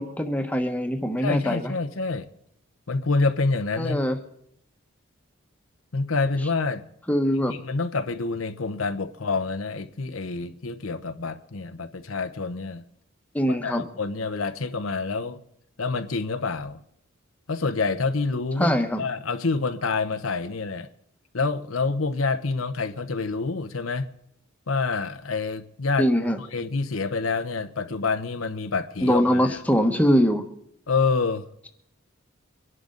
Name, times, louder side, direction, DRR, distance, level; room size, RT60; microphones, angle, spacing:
voice 1, 0.0-1.7 3.8-4.2 7.1-7.6 13.3-13.8 18.6-19.0 26.0-26.4 29.0-30.4, equal, 5° left, 1.2 m, -22 dB
voice 2, 1.2-2.3 2.9-4.0 5.9-6.8 7.5-12.8 13.5-15.4 15.8-16.8 17.5-18.7 19.0-20.9 21.3-24.1 24.7-26.1 26.5-29.4 30.9-31.4, left 4 dB, 85° left, 0.9 m, -27 dB
24.5 x 11.0 x 3.9 m
head